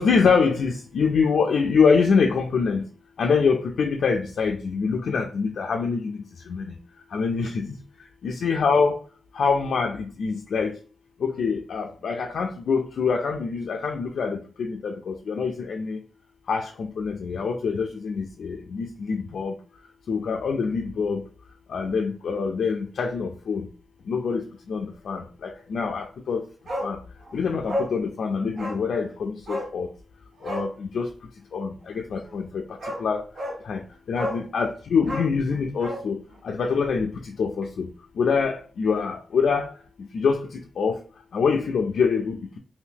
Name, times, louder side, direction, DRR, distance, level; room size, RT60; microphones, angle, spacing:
voice 1, 0.0-2.8 3.2-6.1 6.5-6.6 7.1-7.6 8.2-8.9 9.4-10.7 11.2-16.0 16.5-16.6 17.0-19.5 20.1-21.2 21.7-23.6 24.1-24.4 24.7-26.4 26.8-27.0 27.3-29.9 30.5-30.7 30.9-31.1 31.5-31.7 32.1-32.5 33.0-33.2 33.7-33.8 34.1-36.2 36.5-37.1 37.4-37.9 38.2-39.7 40.2-40.4 40.8-40.9 41.3-42.4, left 5 dB, 75° left, 0.3 m, -24 dB
Bark, 26.7-26.9 27.2-27.3 27.7-27.9 28.6-28.8 29.5-29.7 30.4-30.7 32.3-32.4 32.8-33.0 33.4-33.6 34.2-34.5 35.0-36.0 36.3-36.4, equal, 65° right, 1.1 m, -31 dB
2.8 x 2.5 x 3.4 m
wide cardioid pair, 175°, 0 cm